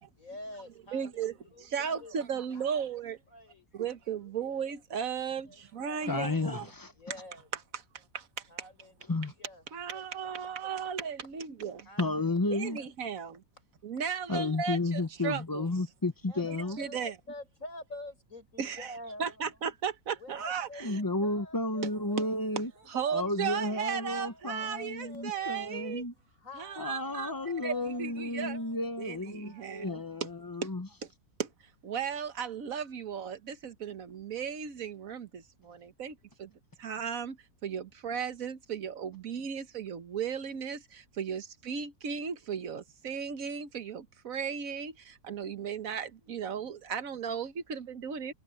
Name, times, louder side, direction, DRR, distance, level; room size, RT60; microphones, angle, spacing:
voice 1, 0.1-4.6 5.4-6.1 6.9-7.5 8.5-10.0 10.3-10.5 11.8-12.9 16.3-19.4 20.2-22.3 22.7-25.5 26.2-28.8 29.4-30.2, left 1 dB, 60° left, 6.5 m, -49 dB
voice 2, 0.9-1.3 1.6-3.2 3.7-6.7 9.7-11.8 12.5-13.4 13.8-15.7 16.8-17.1 18.6-18.9 19.2-21.0 22.9-26.0 26.6-27.3 27.6-27.7 28.0-28.6 29.0-30.3 30.6-30.7 31.4-31.5 31.8-36.5 36.8-48.3, right 7 dB, 65° right, 1.6 m, -36 dB
voice 3, 6.1-6.9 9.1-9.3 12.0-12.8 14.3-16.8 20.8-22.7 23.1-26.1 26.8-30.9, left 2 dB, 15° left, 0.8 m, -32 dB
omnidirectional pair, 1.6 m